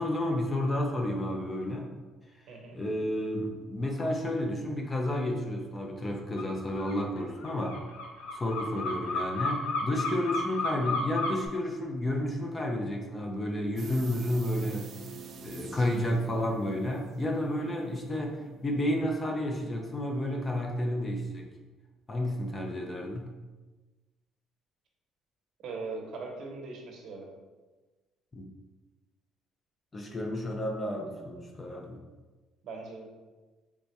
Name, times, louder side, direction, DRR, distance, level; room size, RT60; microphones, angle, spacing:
voice 1, 0.0-1.9 2.7-7.8 8.3-14.9 15.4-21.5 22.1-23.3 28.3-28.4 29.9-32.0, left 1 dB, 20° left, 1 dB, 0.4 m, -31 dB
voice 2, 2.5-2.8 25.6-27.3 32.6-33.1, right 3 dB, 60° right, 1 dB, 0.7 m, -40 dB
sound 1, 6.4-6.5 6.8-11.5, left 3 dB, 85° left, 0.7 m, -32 dB
sound 2, 13.8-20.6 20.9-21.0, right 4 dB, 45° right, 0.3 m, -46 dB
3.4 x 2.1 x 4.0 m, 1.2 s
cardioid pair, 145°, 0 cm